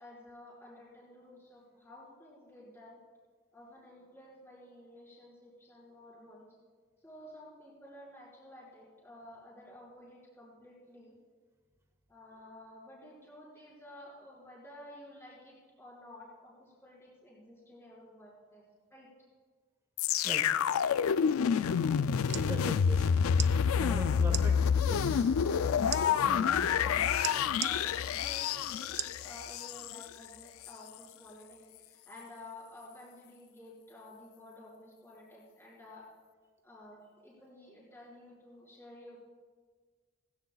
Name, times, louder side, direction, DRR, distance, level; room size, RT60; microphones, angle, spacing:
voice 1, 0.0-3.0 3.5-6.4 7.0-11.1 12.1-18.6 18.9-19.1 23.6-24.3 25.2-25.5 26.1-36.0 36.6-39.3, left 1 dB, 10° left, -7 dB, 5.0 m, -52 dB
sound 1, 20.0-30.0 30.6-30.7, left 7 dB, 85° left, 0.4 m, -28 dB
voice 2, 20.1-20.4 22.3-23.1 23.8-26.7, right 1 dB, 15° right, 3 dB, 1.1 m, -41 dB
sound 2, 22.3-22.5 23.3-23.5 24.3-24.5 25.9-26.0 27.2-27.7 29.0-29.2 29.8-29.9, right 10 dB, 35° right, 0.4 m, -35 dB
19.5 x 16.5 x 2.4 m, 1.5 s
head